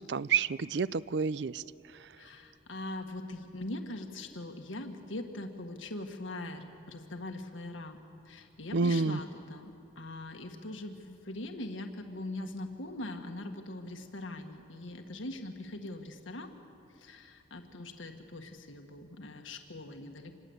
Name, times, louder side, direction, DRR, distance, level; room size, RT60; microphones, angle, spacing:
voice 1, 0.0-1.6 8.7-9.2, right 5 dB, 60° right, 18 dB, 0.5 m, -29 dB
voice 2, 2.1-8.0 8.2-16.5 16.9-20.4, left 1 dB, 85° left, 5 dB, 1.6 m, -42 dB
27.0 x 21.0 x 8.0 m, 2.7 s
head